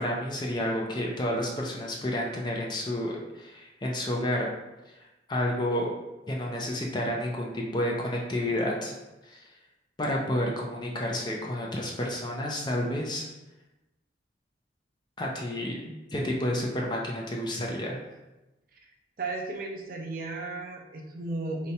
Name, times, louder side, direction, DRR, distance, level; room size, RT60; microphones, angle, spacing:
voice 1, 0.0-4.5 4.9-5.0 5.3-5.9 6.3-8.9 9.2-9.5 10.0-13.3 15.2-15.8 16.1-18.0, left 1 dB, 25° left, -1 dB, 0.4 m, -30 dB
voice 2, 19.2-21.7, right 2 dB, 50° right, 1 dB, 0.5 m, -35 dB
2.7 x 2.2 x 4.0 m, 1.0 s
head